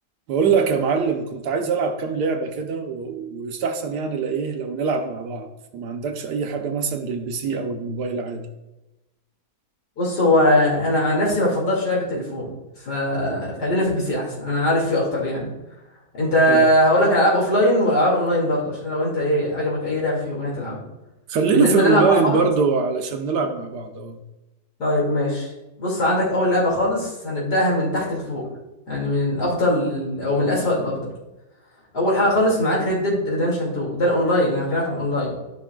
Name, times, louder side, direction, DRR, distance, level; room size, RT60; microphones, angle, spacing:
voice 1, 0.3-8.5 16.5-16.7 21.3-24.2, right 5 dB, 75° right, 5 dB, 1.2 m, -23 dB
voice 2, 10.0-12.5 12.8-15.5 16.1-20.8 21.5-22.4 24.8-25.5 25.8-28.5 28.9-31.1 31.9-35.3, left 1 dB, 65° left, -4 dB, 2.9 m, -21 dB
12.5 x 5.6 x 2.3 m, 0.99 s
omnidirectional pair, 1.9 m